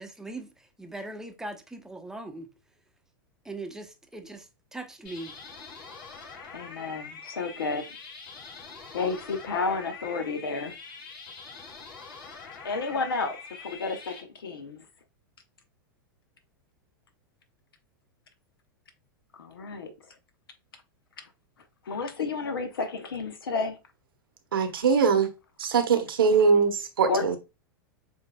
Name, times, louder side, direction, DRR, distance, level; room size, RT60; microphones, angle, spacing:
voice 1, 0.0-2.5 3.4-5.4, right 2 dB, 5° right, 0.7 m, -40 dB
sound 1, 5.0-14.2, left 5 dB, 45° left, 2.7 m, -44 dB
voice 2, 6.5-8.0 8.9-10.8 12.6-14.9 19.4-20.2 21.2-21.3 21.8-23.8 27.1-27.4, left 4 dB, 80° left, 0.9 m, -31 dB
voice 3, 24.5-25.3 25.6-27.4, right 5 dB, 80° right, 0.9 m, -22 dB
7.1 x 2.7 x 2.2 m
hypercardioid pair, 100°, 12 cm